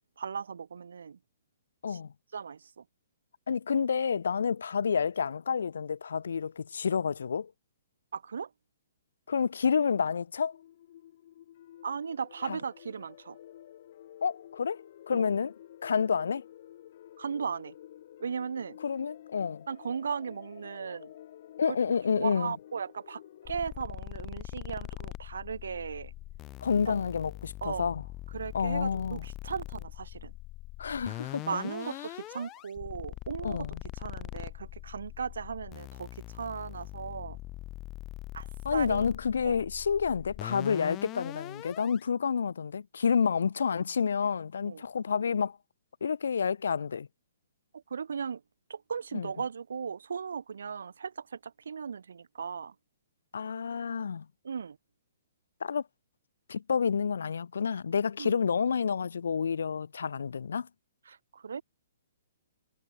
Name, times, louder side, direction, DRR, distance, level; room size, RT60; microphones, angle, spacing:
voice 1, 0.2-1.2 1.9-2.0 2.3-2.8 8.1-8.5 11.8-13.4 15.1-15.3 17.2-17.7 18.2-18.8 19.7-21.1 22.1-26.1 26.9-27.0 27.6-27.9 28.3-30.3 31.4-33.7 33.9-37.4 38.3-39.1 39.4-39.7 44.6-44.8 47.7-48.4 48.7-52.7 54.4-54.8 58.2-58.3 61.1-61.6, right 6 dB, 75° right, 0.4 m, -37 dB
voice 2, 3.5-7.5 9.3-10.5 12.4-12.6 14.2-15.5 15.8-16.4 18.8-19.6 21.6-22.5 26.6-28.0 28.5-29.2 30.8-31.5 33.4-33.8 38.6-45.6 46.0-47.1 49.1-49.3 53.3-54.3 55.6-55.8 56.5-60.7, left 6 dB, 75° left, 0.7 m, -29 dB
sound 1, 10.5-23.6, left 12 dB, 55° left, 5.7 m, -51 dB
sound 2, 23.4-42.0, left 17 dB, 25° left, 1.8 m, -42 dB
hypercardioid pair, 135°, 0 cm